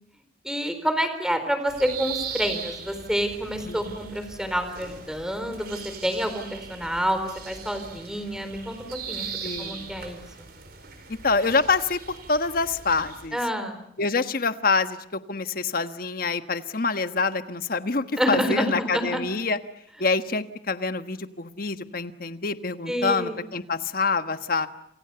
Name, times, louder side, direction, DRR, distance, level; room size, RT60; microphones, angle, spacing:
voice 1, 0.4-10.2 13.3-13.8 18.2-19.2 22.9-23.4, equal, 5° right, 9 dB, 4.1 m, -28 dB
sound 1, 1.7-13.3, right 6 dB, 60° right, 5.0 m, -39 dB
voice 2, 3.7-4.0 9.4-9.9 11.1-13.4 14.0-19.6 20.0-24.7, left 4 dB, 55° left, 10 dB, 1.4 m, -26 dB
28.5 x 27.0 x 6.9 m, 0.75 s
head